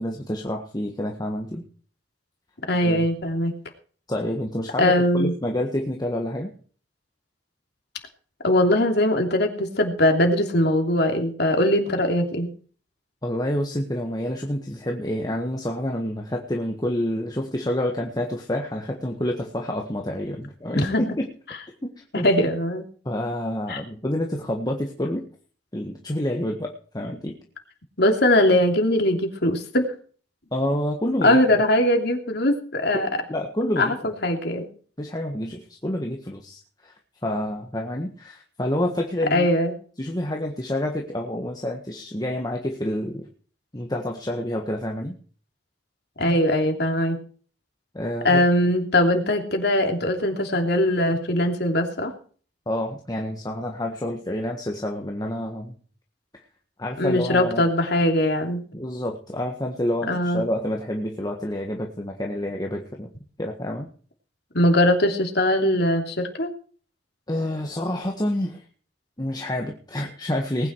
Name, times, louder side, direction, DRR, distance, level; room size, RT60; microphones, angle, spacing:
voice 1, 0.0-1.6 2.8-3.0 4.1-6.5 13.2-21.3 21.8-21.9 22.2-22.3 23.0-25.3 25.7-27.4 30.5-31.4 32.9-34.0 35.0-36.9 37.2-39.5 40.0-43.2 43.7-45.1 47.9-48.4 52.7-55.7 56.8-57.7 58.7-63.1 63.4-63.9 67.3-68.6 69.2-70.7, left 1 dB, 20° left, 1 dB, 1.6 m, -28 dB
voice 2, 2.7-3.5 4.8-5.3 8.4-12.5 20.7-21.0 22.1-22.8 23.7-23.8 28.0-29.9 31.2-33.1 33.8-34.7 39.3-39.7 46.2-47.2 48.2-52.1 57.0-58.6 60.1-60.4 64.5-66.5, left 1 dB, 65° left, 4 dB, 3.0 m, -21 dB
19.5 x 9.7 x 4.7 m, 0.43 s
head